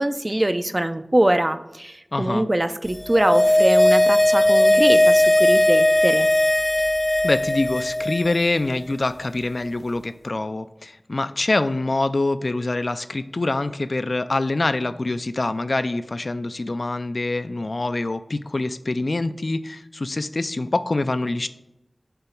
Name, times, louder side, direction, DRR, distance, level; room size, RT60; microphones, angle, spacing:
voice 1, 0.0-6.3, right 1 dB, 35° right, 10 dB, 0.4 m, -23 dB
voice 2, 2.1-2.5 7.2-21.5, left 2 dB, 75° left, 11 dB, 0.3 m, -25 dB
sound 1, 2.9-8.4 8.7-8.8, left 1 dB, 60° left, 0.7 m, -18 dB
6.9 x 3.9 x 4.4 m, 0.93 s
wide cardioid pair, 45°, 0 cm